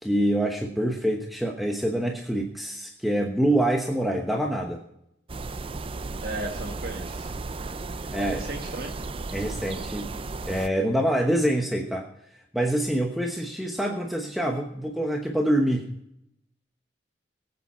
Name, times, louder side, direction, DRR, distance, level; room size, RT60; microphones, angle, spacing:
voice 1, 0.0-4.8 8.1-8.4 9.3-10.1 10.4-12.1 12.5-15.9, right 1 dB, ahead, 1 dB, 1.0 m, -25 dB
sound 1, 5.3-10.7, right 3 dB, 30° right, 0.5 m, -35 dB
voice 2, 6.2-7.3 8.2-8.9, right 2 dB, 55° right, 2 dB, 1.4 m, -35 dB
19.5 x 8.7 x 4.3 m, 0.80 s
head